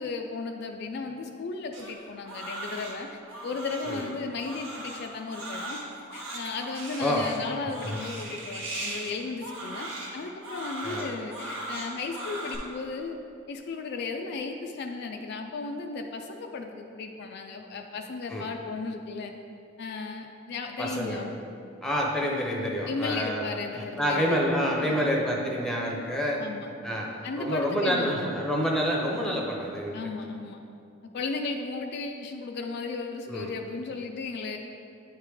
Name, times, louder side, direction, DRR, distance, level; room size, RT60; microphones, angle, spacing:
voice 1, 0.0-3.1 3.4-5.8 6.1-13.2 13.5-19.3 19.8-21.3 22.9-24.4 24.9-25.1 26.4-26.7 27.2-28.1 29.9-30.6 31.0-34.6, left 4 dB, 55° left, 4 dB, 0.3 m, -35 dB
Crying sobbing, 1.7-12.6, right 1 dB, 80° right, 1.1 m, -38 dB
voice 2, 20.8-21.2 21.8-23.4 23.7-26.4 26.8-27.1 27.4-30.0 33.3-33.5, equal, 5° left, -2 dB, 0.7 m, -28 dB
9.4 x 3.2 x 3.4 m, 2.5 s
head